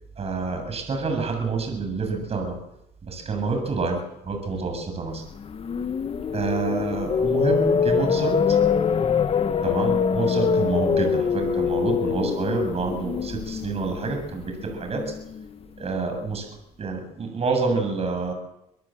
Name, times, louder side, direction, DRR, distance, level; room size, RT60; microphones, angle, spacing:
voice 1, 0.2-2.6 3.0-4.0 4.3-5.2 6.3-8.6 9.6-15.0 15.8-16.5 16.8-18.3, right 4 dB, 35° right, 4 dB, 7.6 m, -27 dB
sound 1, 5.3-15.4, left 6 dB, 35° left, 1.2 m, -24 dB
24.5 x 19.0 x 7.9 m, 0.86 s
cardioid pair, 110°, 17 cm